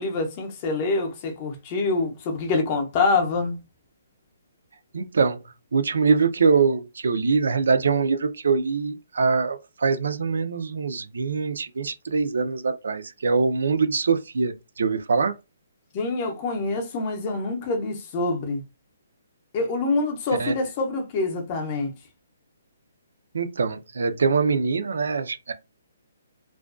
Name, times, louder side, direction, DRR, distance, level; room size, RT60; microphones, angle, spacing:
voice 1, 0.0-3.6 15.9-18.6 19.5-21.9, left 3 dB, 25° left, 0.6 m, -25 dB
voice 2, 4.9-5.4 5.7-15.3 20.4-20.5 23.3-25.5, right 5 dB, 75° right, 0.4 m, -23 dB
2.4 x 2.2 x 2.4 m
hypercardioid pair, 170°, 0 cm